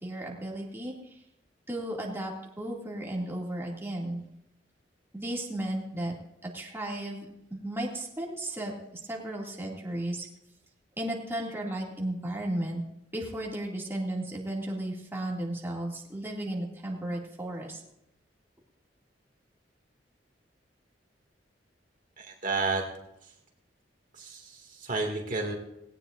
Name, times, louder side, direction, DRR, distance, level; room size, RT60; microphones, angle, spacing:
voice 1, 0.0-1.2 1.7-4.2 5.1-6.1 6.4-8.7 9.1-10.3 11.0-12.8 13.1-17.8, right 1 dB, 15° right, -3 dB, 2.3 m, -34 dB
voice 2, 22.2-22.8 24.2-25.5, right 3 dB, 50° right, 1 dB, 2.2 m, -31 dB
18.5 x 17.5 x 2.6 m, 0.84 s
head